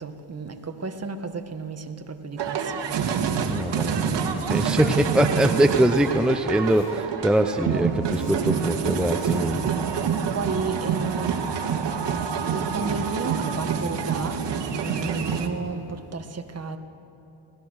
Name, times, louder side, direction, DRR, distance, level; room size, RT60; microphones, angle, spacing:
voice 1, 0.0-3.5 4.3-4.6 10.3-16.8, right 4 dB, 30° right, 7 dB, 1.7 m, -33 dB
sound 1, 2.4-15.5, right 6 dB, 60° right, 2.2 m, -27 dB
voice 2, 3.4-9.7, equal, ahead, 7 dB, 0.8 m, -23 dB
Zipper (clothing), 4.3-4.9 5.5-6.1 6.4-7.2 7.6-8.5 9.0-9.8, left 2 dB, 40° left, 7.6 m, -45 dB
29.0 x 19.0 x 6.5 m, 2.9 s
cardioid pair, 90°, 49 cm